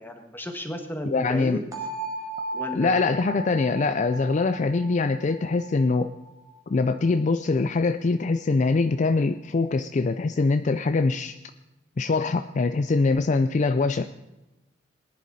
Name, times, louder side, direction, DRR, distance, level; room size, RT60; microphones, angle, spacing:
voice 1, 0.0-1.6 2.5-3.0, equal, 10° left, 5 dB, 1.5 m, -33 dB
voice 2, 1.1-1.6 2.7-6.1 6.7-11.3 12.0-14.1, left 3 dB, 40° left, 10 dB, 0.4 m, -23 dB
sound 1, 1.7-7.6, right 2 dB, 20° right, 2.3 m, -37 dB
19.0 x 10.5 x 4.1 m, 1.0 s
head